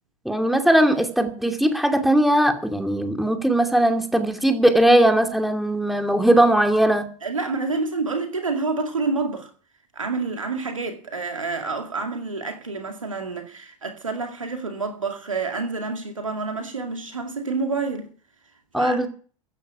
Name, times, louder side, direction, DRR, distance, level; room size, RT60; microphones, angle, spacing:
voice 1, 0.2-7.0 18.7-19.1, right 1 dB, ahead, 2.5 m, -19 dB
voice 2, 7.2-9.5 9.9-18.1 18.8-19.0, right 3 dB, 80° right, 2.3 m, -28 dB
15.5 x 9.7 x 6.1 m
figure-of-eight pair, 80°, 17 cm